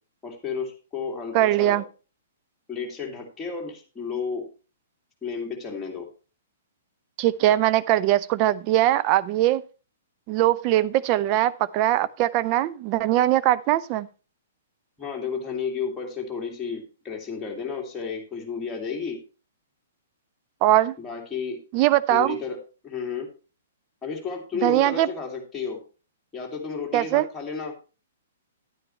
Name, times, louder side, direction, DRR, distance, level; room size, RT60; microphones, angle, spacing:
voice 1, 0.2-1.8 2.7-4.5 5.2-6.1 15.0-19.2 21.0-21.6 22.1-22.6 22.8-23.3 24.0-25.8 26.3-27.8, left 5 dB, 10° left, 2.6 m, -32 dB
voice 2, 1.3-1.8 7.2-9.6 10.3-14.1 20.6-21.0 21.7-22.4 24.6-25.1 26.9-27.3, right 14 dB, 35° right, 0.5 m, -21 dB
11.0 x 9.7 x 3.2 m
figure-of-eight pair, 115°, 0 cm